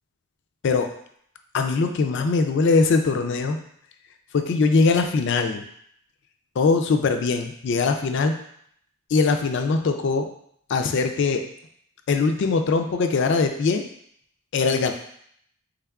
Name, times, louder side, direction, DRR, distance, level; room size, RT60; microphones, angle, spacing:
voice 1, 1.5-3.6 4.3-5.6 6.6-8.3 9.1-10.3 10.7-11.4 12.1-13.8 14.5-14.9, left 4 dB, 55° left, 6 dB, 0.3 m, -21 dB
3.5 x 3.4 x 2.3 m, 0.68 s
head